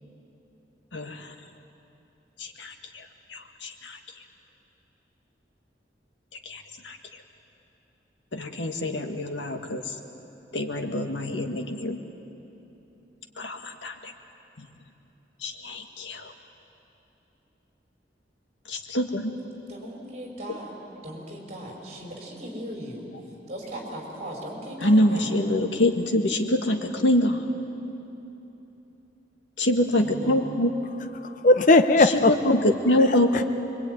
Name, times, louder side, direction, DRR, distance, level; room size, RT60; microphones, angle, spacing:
voice 1, 0.9-1.3 2.4-4.0 6.5-7.0 8.3-10.0 10.5-12.0 13.4-14.1 14.6-14.7 15.4-16.3 18.7-19.4 24.8-27.5 29.6-30.7 32.3-32.4 32.9-33.4, left 1 dB, 85° left, 5 dB, 1.9 m, -25 dB
voice 2, 19.7-20.7 21.0-23.0 23.5-25.4 30.0-30.5, right 1 dB, 40° right, 0 dB, 5.3 m, -38 dB
voice 3, 31.2-32.6 33.0-33.4, left 2 dB, 45° left, 8 dB, 0.8 m, -20 dB
25.0 x 23.5 x 9.5 m, 3.0 s
head